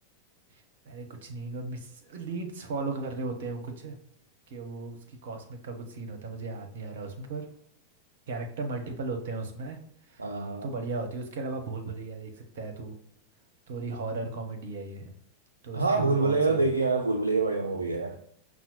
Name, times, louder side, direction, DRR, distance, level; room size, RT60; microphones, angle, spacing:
voice 1, 0.8-4.0 4.5-7.5 8.3-9.8 10.1-10.3 10.6-13.0 13.7-15.1 15.6-16.7, right 3 dB, 60° right, 0.7 m, -36 dB
voice 2, 10.2-10.7 15.7-18.2, right 3 dB, 75° right, 0.3 m, -26 dB
5.5 x 2.2 x 2.9 m
figure-of-eight pair, 90°, 0 cm